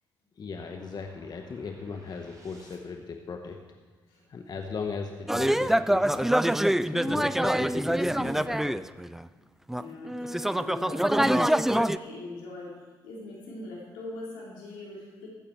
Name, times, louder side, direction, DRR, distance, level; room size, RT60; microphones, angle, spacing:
voice 1, 0.4-3.6 4.3-8.9, left 5 dB, 50° left, 4 dB, 1.0 m, -38 dB
sound 1, 0.6-3.2, right 1 dB, 40° right, 3.5 m, -57 dB
sound 2, 5.3-9.2 9.7-12.0, right 1 dB, 5° right, 0.4 m, -25 dB
voice 2, 9.7-12.8 13.0-15.3, left 2 dB, 85° left, -4 dB, 3.2 m, -40 dB
15.0 x 8.6 x 4.5 m, 1.4 s
hypercardioid pair, 50°, 9 cm